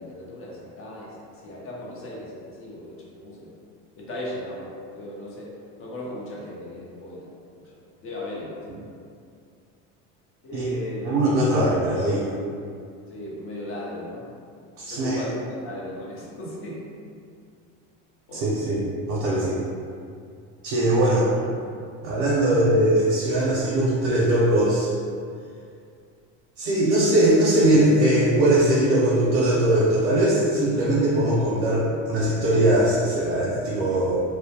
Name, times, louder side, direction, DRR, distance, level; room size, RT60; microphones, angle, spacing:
voice 1, 0.0-3.5 4.0-5.5 5.8-7.3 7.6-7.7 8.0-8.9 10.4-11.1 13.1-14.2 14.9-16.9 18.3-18.4 21.0-21.3, left 1 dB, 40° left, -5 dB, 0.6 m, -36 dB
voice 2, 11.0-12.2 14.8-15.2 18.3-18.8 19.1-19.6 20.6-21.2 22.0-24.9 26.6-34.2, right 1 dB, 65° right, -7 dB, 0.6 m, -20 dB
2.1 x 2.1 x 2.8 m, 2.3 s
cardioid pair, 130°, 35 cm